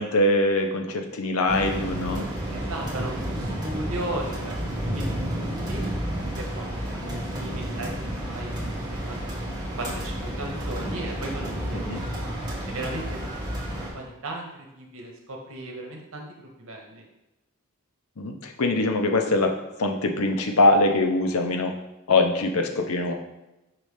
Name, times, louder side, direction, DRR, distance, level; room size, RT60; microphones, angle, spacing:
voice 1, 0.0-2.3 11.7-12.0 18.2-21.7 22.1-23.1, left 2 dB, 80° left, 4 dB, 0.7 m, -23 dB
sound 1, 1.5-13.9, equal, 20° right, 1.4 m, -31 dB
voice 2, 2.5-5.8 6.4-9.4 9.8-12.0 12.7-13.3 13.7-17.0, right 1 dB, 70° right, 0 dB, 1.1 m, -36 dB
5.9 x 3.2 x 5.0 m, 0.97 s
head